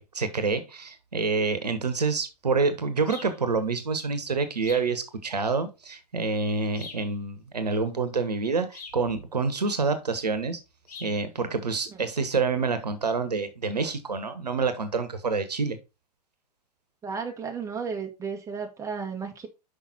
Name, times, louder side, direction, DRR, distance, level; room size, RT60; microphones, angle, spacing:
voice 1, 0.0-10.6 11.0-15.8, right 4 dB, 80° right, 1.4 m, -27 dB
sound 1, 3.0-3.4 4.6-5.0 6.7-7.1 8.7-9.0 10.9-11.2, left 4 dB, 70° left, 3.3 m, -43 dB
voice 2, 17.0-19.5, right 5 dB, 15° right, 1.7 m, -34 dB
6.1 x 5.5 x 4.2 m
figure-of-eight pair, 100°, 21 cm